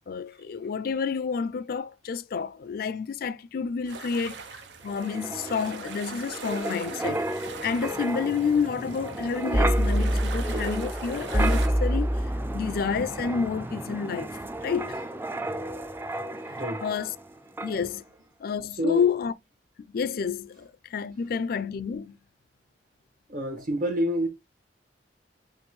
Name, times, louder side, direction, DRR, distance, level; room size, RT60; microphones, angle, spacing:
voice 1, 0.1-12.2 12.5-14.4 14.6-15.0 16.8-17.1 17.6-18.0 18.4-19.3 19.9-22.2, left 6 dB, 55° left, 0.4 m, -29 dB
sound 1, 3.9-11.7, right 5 dB, 85° right, 0.7 m, -42 dB
Wind, 4.9-17.3 17.6-17.8, right 1 dB, 10° right, 0.4 m, -29 dB
voice 2, 16.5-16.9 18.8-19.1 23.3-24.3, equal, 55° right, 1.5 m, -28 dB
5.2 x 2.5 x 3.2 m
head